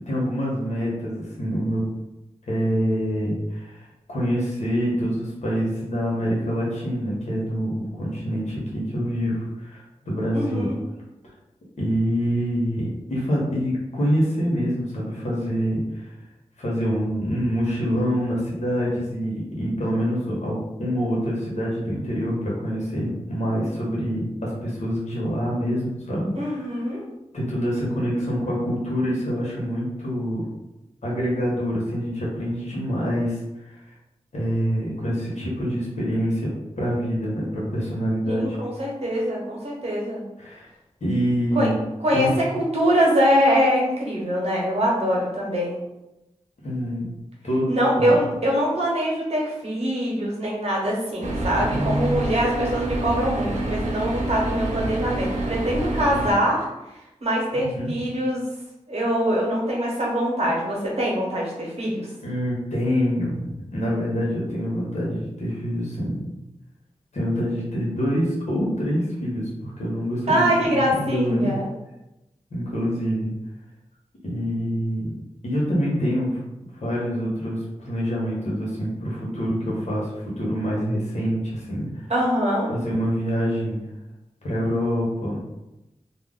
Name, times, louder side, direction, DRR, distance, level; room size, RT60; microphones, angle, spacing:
voice 1, 0.1-1.8 2.5-10.7 11.8-16.1 16.6-26.7 27.3-30.4 31.0-33.7 34.3-36.5 36.8-38.6 40.4-40.7 41.0-41.8 42.1-42.4 46.6-47.0 47.4-47.7 48.0-48.2 51.6-52.2 57.6-57.9 62.2-63.4 63.7-66.2 67.1-71.5 72.5-73.3 74.2-75.1 75.4-76.4 76.7-82.1 82.7-83.8 84.4-85.4, equal, 70° left, -5 dB, 0.9 m, -26 dB
voice 2, 10.3-10.8 26.3-27.0 38.2-40.2 41.5-41.7 42.0-45.8 47.7-56.7 57.2-58.4 58.9-62.1 70.3-71.7 82.1-82.7, equal, 60° right, -4 dB, 1.0 m, -23 dB
sound 1, 51.2-56.4, right 2 dB, 80° right, 0.5 m, -27 dB
2.4 x 2.0 x 3.6 m, 0.95 s
wide cardioid pair, 55°, 12 cm